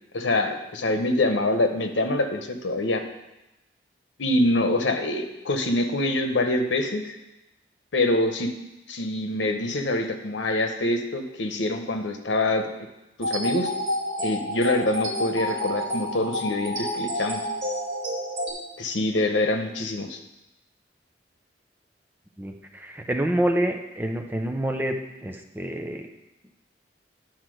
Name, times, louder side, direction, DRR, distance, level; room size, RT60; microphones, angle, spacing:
voice 1, 0.1-3.0 4.2-7.1 7.9-8.5 8.9-12.7 13.2-13.7 14.2-17.4 18.8-20.2, left 2 dB, 90° left, 6 dB, 0.9 m, -25 dB
sound 1, 13.2-18.5, equal, 75° right, 2.8 m, -29 dB
voice 2, 22.4-24.9 25.2-26.0, right 1 dB, 10° right, 4 dB, 0.6 m, -27 dB
9.7 x 4.4 x 6.3 m, 0.96 s
head